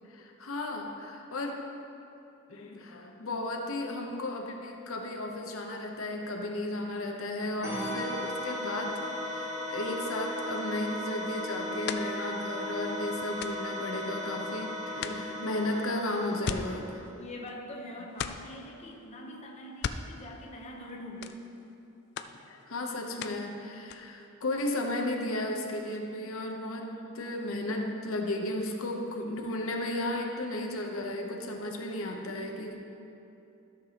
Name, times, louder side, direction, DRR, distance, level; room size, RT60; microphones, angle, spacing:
voice 1, 0.1-1.7 2.5-9.0 9.2-17.0 22.4-32.8, left 1 dB, 85° left, 2 dB, 0.8 m, -34 dB
sound 1, 7.6-17.1, left 1 dB, 15° right, 2.1 m, -36 dB
sound 2, 9.7-14.6 15.0-17.8 18.1-18.7 19.6-20.9 21.2-21.8 22.2-23.5 23.8-24.3, left 7 dB, 55° left, 0.3 m, -41 dB
voice 2, 17.2-21.4, left 1 dB, 30° left, -1 dB, 0.8 m, -43 dB
13.0 x 6.7 x 2.9 m, 2.8 s
head